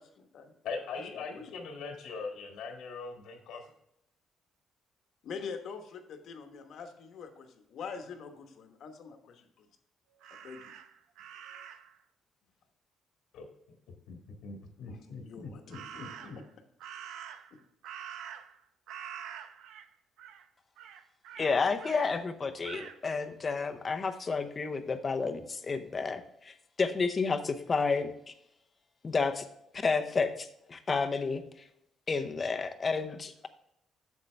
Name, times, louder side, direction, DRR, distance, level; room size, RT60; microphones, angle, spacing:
voice 1, 0.0-0.5 0.9-1.5 5.2-9.7 10.4-10.7 14.9-15.8 16.2-16.4 17.5-17.6, left 5 dB, 55° left, 6 dB, 1.1 m, -45 dB
voice 2, 0.6-3.6 13.3-13.5 14.1-16.4, left 4 dB, 85° left, 2 dB, 1.5 m, -41 dB
Crow, 10.2-12.0 15.7-16.5 16.8-18.6 18.9-19.9 20.2-20.4 20.8-22.1 22.6-23.0, right 9 dB, 90° right, 0.7 m, -46 dB
voice 3, 21.4-28.3 29.0-29.4 29.8-31.4 32.1-33.5, left 4 dB, 25° left, 7 dB, 0.7 m, -31 dB
8.0 x 7.3 x 3.3 m, 0.77 s
cardioid pair, 155°, 0 cm